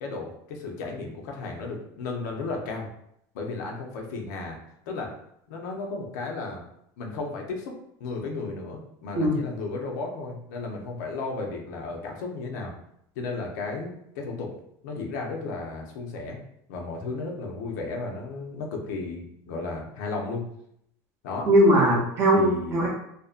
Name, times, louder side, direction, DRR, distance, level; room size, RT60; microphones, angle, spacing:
voice 1, 0.0-2.9 3.3-4.6 4.9-5.1 5.5-6.7 7.0-7.7 8.0-12.7 13.2-14.5 14.8-16.4 16.7-20.4 21.2-21.5 22.3-22.9, left 3 dB, 90° left, 1 dB, 0.6 m, -34 dB
voice 2, 21.5-22.9, equal, 35° right, -2 dB, 0.6 m, -20 dB
2.5 x 2.1 x 2.4 m, 0.74 s
cardioid pair, 175°, 9 cm